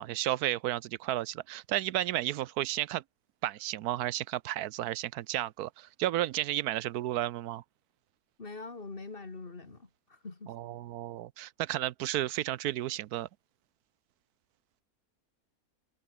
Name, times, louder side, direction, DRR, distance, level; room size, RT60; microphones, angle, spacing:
voice 1, 0.0-3.0 3.4-7.6 10.5-13.3, right 14 dB, 90° right, 1.2 m, -32 dB
voice 2, 8.4-10.6, left 3 dB, 40° left, 2.2 m, -44 dB
omnidirectional pair, 1.6 m